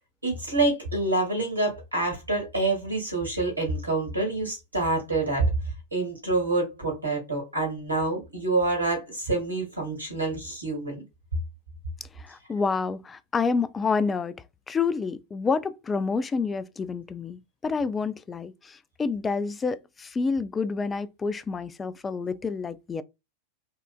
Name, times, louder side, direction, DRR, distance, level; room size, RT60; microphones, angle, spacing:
voice 1, 0.2-5.5 5.9-11.0, right 2 dB, 85° right, 2.0 m, -27 dB
voice 2, 12.2-14.4 14.7-23.0, left 4 dB, 15° left, 0.3 m, -28 dB
5.5 x 2.5 x 2.2 m
figure-of-eight pair, 90°, 0 cm